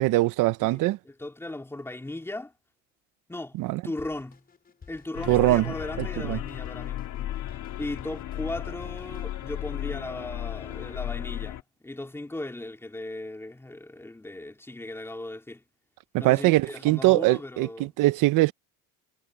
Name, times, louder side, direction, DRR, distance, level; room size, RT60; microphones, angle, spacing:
voice 1, 0.0-1.0 3.6-3.8 5.3-5.7 6.0-6.4 16.1-18.5, right 19 dB, 50° right, 0.8 m, -22 dB
voice 2, 0.6-2.5 3.3-3.6 3.8-4.4 4.9-7.0 7.8-15.6 16.2-17.9, left 2 dB, 5° left, 3.3 m, -37 dB
Drum kit, 4.0-9.3, left 5 dB, 20° left, 5.7 m, -51 dB
sound 1, 5.1-11.6, left 12 dB, 45° left, 3.9 m, -35 dB
cardioid pair, 140°, 41 cm